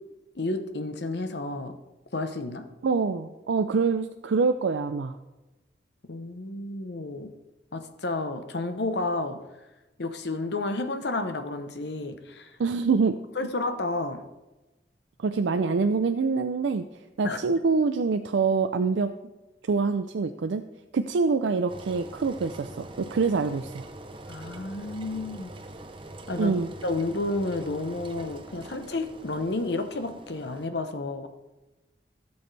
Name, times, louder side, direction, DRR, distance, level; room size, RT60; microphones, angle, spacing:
voice 1, 0.4-1.8 2.1-2.7 6.1-7.3 7.7-9.4 10.0-12.5 13.4-14.2 17.2-17.4 24.3-25.5 26.3-26.5 26.8-31.3, left 2 dB, 65° left, 8 dB, 0.9 m, -31 dB
voice 2, 2.8-5.2 12.6-13.2 15.2-16.8 17.2-19.1 19.7-20.6 20.9-23.9 26.4-26.7, right 4 dB, 80° right, 7 dB, 0.4 m, -25 dB
Engine, 21.7-30.7, right 2 dB, 30° right, 0.7 m, -44 dB
16.5 x 7.0 x 3.3 m, 1.1 s
head